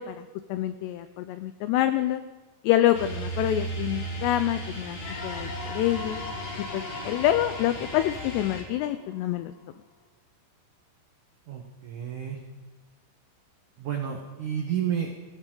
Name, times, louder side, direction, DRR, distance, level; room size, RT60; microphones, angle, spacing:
voice 1, 0.0-2.2 2.6-6.2 6.7-9.5, left 13 dB, 90° left, 11 dB, 2.4 m, -27 dB
sound 1, 2.9-8.6, right 2 dB, 45° left, 1.8 m, -36 dB
sound 2, 5.0-9.6, left 4 dB, 65° left, 2.8 m, -40 dB
voice 2, 11.5-12.4 13.8-15.1, right 9 dB, 80° right, 2 dB, 1.8 m, -31 dB
19.0 x 15.5 x 3.8 m, 1.3 s
omnidirectional pair, 5.5 m